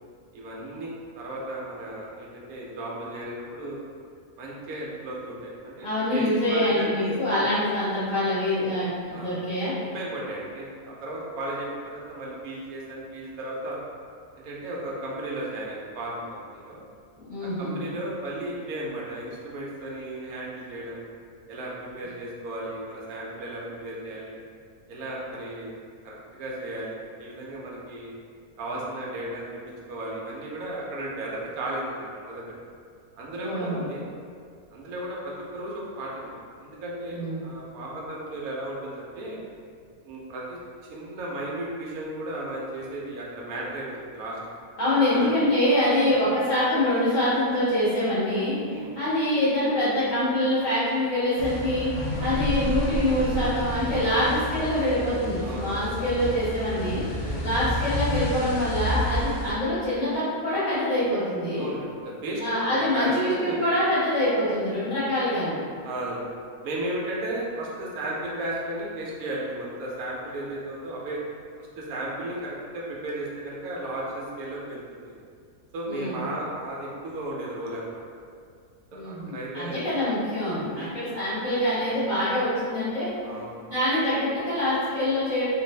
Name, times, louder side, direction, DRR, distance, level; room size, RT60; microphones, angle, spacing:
voice 1, 0.3-3.8 4.4-7.4 9.1-9.4 9.8-13.8 14.4-16.8 17.4-21.0 21.5-24.3 24.9-25.7 26.0-28.1 28.6-29.5 29.9-32.4 33.2-34.0 34.7-36.3 36.6-39.4 40.0-40.6 40.9-44.4 45.1-45.3 46.0-46.2 48.7-48.9 52.1-52.3 54.2-54.4 55.4-55.8 57.2-57.5 58.8-59.0 61.5-63.6 65.8-66.2 66.6-71.2 71.6-75.1 75.7-78.0 78.9-79.9 80.5-80.9 81.6-81.9 83.2-83.6, right 1 dB, 85° right, -4 dB, 1.1 m, -35 dB
voice 2, 5.8-9.7 17.2-17.8 33.4-33.8 37.1-37.5 44.8-48.5 48.9-51.9 52.2-57.0 57.4-61.7 62.4-65.5 75.9-76.2 78.9-83.1 83.7-85.4, left 1 dB, 35° left, -13 dB, 1.5 m, -25 dB
sound 1, 51.4-59.5, left 1 dB, 70° left, 1.0 m, -30 dB
3.2 x 2.5 x 3.2 m, 2.2 s
omnidirectional pair, 1.5 m